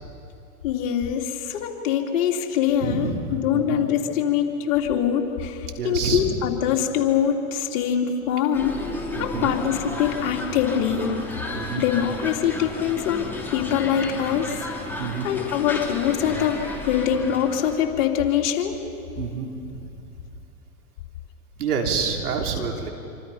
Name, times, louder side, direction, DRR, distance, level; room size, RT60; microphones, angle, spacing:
voice 1, 0.6-8.8 9.2-11.1 11.8-14.6 15.2-18.8, left 9 dB, 60° left, 1 dB, 3.1 m, -24 dB
voice 2, 2.8-3.9 5.8-6.3 9.2-9.6 11.5-11.9 14.9-15.3 19.2-19.9 21.6-22.9, right 5 dB, 85° right, 2 dB, 3.5 m, -28 dB
sound 1, 8.5-17.8, left 2 dB, 5° left, 3.6 m, -33 dB
26.5 x 25.5 x 5.6 m, 2.8 s
hypercardioid pair, 110°, 44 cm